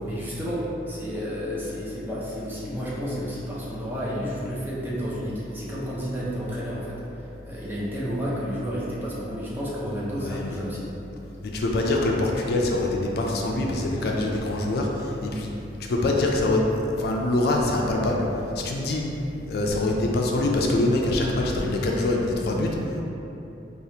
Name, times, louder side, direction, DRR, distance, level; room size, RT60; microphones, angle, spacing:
voice 1, 0.0-7.0 7.4-10.9, equal, 10° right, -7 dB, 0.6 m, -31 dB
voice 2, 10.1-10.6 11.4-15.5 15.8-18.3 18.5-19.0 19.5-22.8, left 2 dB, 60° left, 0 dB, 0.4 m, -24 dB
4.8 x 2.3 x 2.8 m, 2.9 s
head